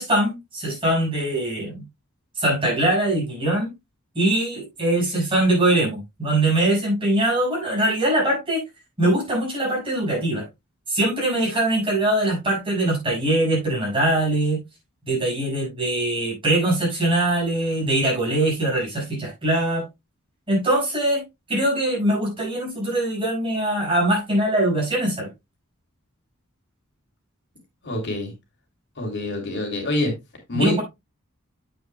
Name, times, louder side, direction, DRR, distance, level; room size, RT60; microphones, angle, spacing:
voice 1, 0.0-1.8 2.4-3.7 4.1-8.6 9.0-10.5 10.9-14.6 15.1-19.9 20.5-21.2 21.5-25.3 30.5-30.8, right 1 dB, 25° right, 5.9 m, -22 dB
voice 2, 27.8-28.3 29.0-30.1 30.5-30.8, left 2 dB, 55° left, 3.0 m, -25 dB
9.6 x 8.3 x 2.3 m
head